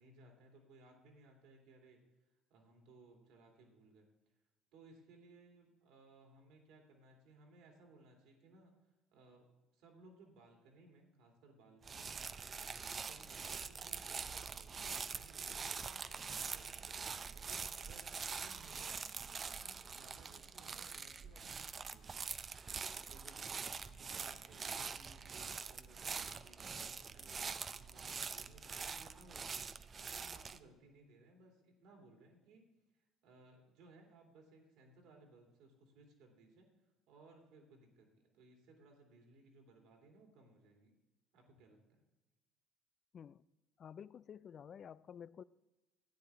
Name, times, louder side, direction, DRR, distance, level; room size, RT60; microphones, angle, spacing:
voice 1, 0.0-2.0 2.5-4.1 4.7-12.3 12.6-19.0 19.6-22.3 23.1-36.7 37.1-40.9 41.3-42.0, right 2 dB, 70° right, 2.6 m, -63 dB
sound 1, 11.8-30.6, right 5 dB, 40° right, 0.5 m, -44 dB
voice 2, 43.8-45.4, left 8 dB, 50° left, 0.3 m, -51 dB
13.0 x 9.7 x 3.5 m
hypercardioid pair, 60°, 0 cm